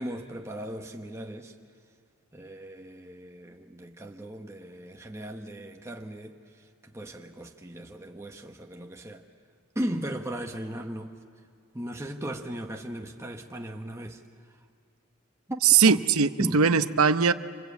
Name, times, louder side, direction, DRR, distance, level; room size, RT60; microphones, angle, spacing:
voice 1, 0.0-1.5 2.3-9.2 9.7-11.2 11.7-14.2 15.5-15.6 15.9-16.0 16.4-16.6, right 1 dB, 15° right, 2 dB, 1.0 m, -37 dB
voice 2, 15.6-17.3, right 6 dB, 85° right, 11 dB, 0.8 m, -20 dB
26.5 x 26.5 x 8.4 m, 2.4 s
head